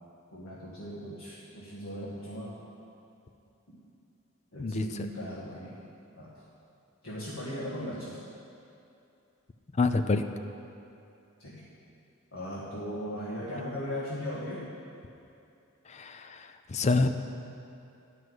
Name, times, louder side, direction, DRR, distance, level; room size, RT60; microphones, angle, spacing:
voice 1, 0.3-2.5 3.7-3.8 4.5-5.7 6.2-6.4 7.0-8.2 11.4-11.7 12.3-14.6, equal, 70° left, -8 dB, 1.7 m, -38 dB
voice 2, 9.8-10.2 15.9-16.4 16.7-17.1, left 3 dB, 30° left, 8 dB, 0.4 m, -26 dB
11.0 x 6.1 x 7.9 m, 2.7 s
head